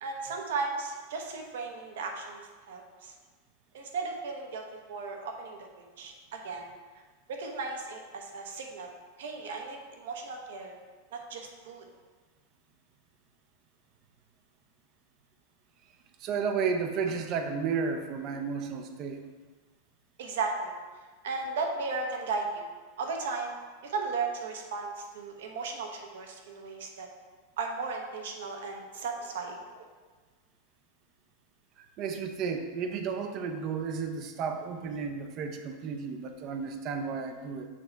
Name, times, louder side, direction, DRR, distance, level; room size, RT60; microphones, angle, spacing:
voice 1, 0.0-2.4 2.7-3.1 3.7-6.6 7.3-8.9 9.2-10.8 11.1-11.9 20.2-20.7 21.2-22.7 23.0-23.5 23.8-27.1 27.6-29.9, right 4 dB, 80° right, 2 dB, 1.0 m, -35 dB
voice 2, 16.2-19.2 32.0-37.7, right 5 dB, 35° right, 6 dB, 0.5 m, -32 dB
6.4 x 4.1 x 4.5 m, 1.4 s
supercardioid pair, 165°, 0 cm